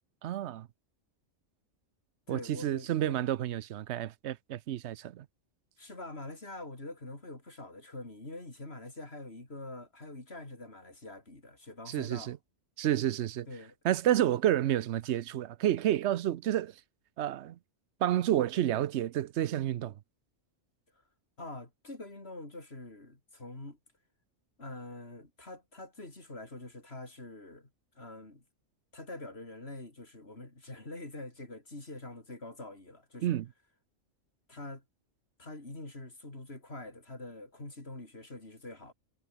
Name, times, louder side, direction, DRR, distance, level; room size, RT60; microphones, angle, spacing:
voice 1, 0.2-0.7 2.3-5.3 11.9-12.4 12.8-13.5 13.8-16.7 17.2-17.6 18.0-19.9 33.2-33.5, right 12 dB, 65° right, 0.9 m, -30 dB
voice 2, 2.3-3.2 5.8-12.3 13.5-13.7 21.4-23.8 24.6-27.7 27.9-28.4 28.9-33.4 34.5-34.8 35.4-38.9, left 2 dB, 50° left, 4.6 m, -45 dB
omnidirectional pair, 1.3 m